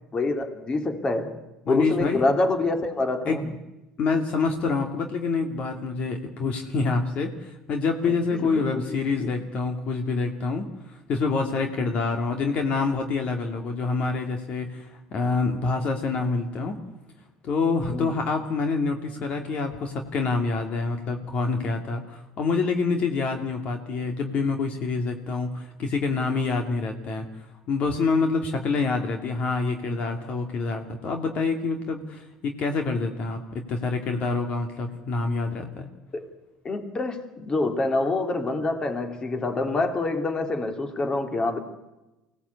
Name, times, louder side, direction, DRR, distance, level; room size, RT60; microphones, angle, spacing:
voice 1, 0.1-1.4 1.7-3.4 8.3-8.8 9.2-9.3 17.9-18.2 36.1-36.3 36.6-41.6, left 2 dB, 30° left, 7 dB, 3.2 m, -26 dB
voice 2, 1.7-2.2 3.3-3.5 4.0-16.8 17.4-27.3 27.7-33.4 33.7-35.9, left 4 dB, 55° left, 4 dB, 2.6 m, -26 dB
24.0 x 18.0 x 8.4 m, 1.0 s
supercardioid pair, 80°, 3 cm